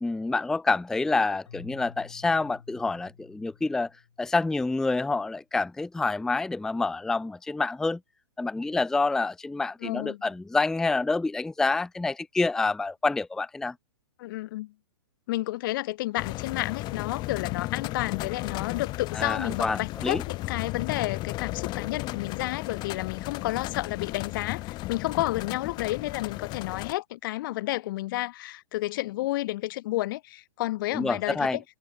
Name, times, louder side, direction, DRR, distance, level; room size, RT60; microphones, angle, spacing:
voice 1, 0.0-3.9 4.2-8.0 8.4-13.7 19.1-20.2 30.9-31.6, left 3 dB, 5° left, 0.4 m, -27 dB
Keyboard (musical), 1.4-4.6, left 7 dB, 80° left, 2.9 m, -50 dB
voice 2, 9.8-10.2 14.2-14.7 15.3-31.6, left 17 dB, 45° left, 0.7 m, -31 dB
sound 1, 16.2-26.9, left 18 dB, 30° left, 1.1 m, -35 dB
hypercardioid pair, 125°, 15 cm